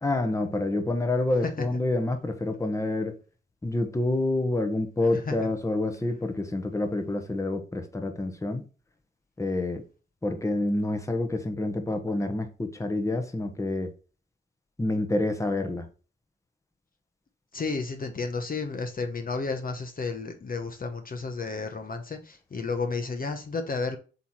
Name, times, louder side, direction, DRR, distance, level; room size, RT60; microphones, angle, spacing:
voice 1, 0.0-3.2 3.6-8.6 9.4-9.8 10.2-13.9 14.8-15.8, left 2 dB, 15° left, 1.1 m, -28 dB
voice 2, 17.5-24.0, left 4 dB, 40° left, 1.0 m, -32 dB
7.8 x 3.1 x 4.3 m
cardioid pair, 85°, 21 cm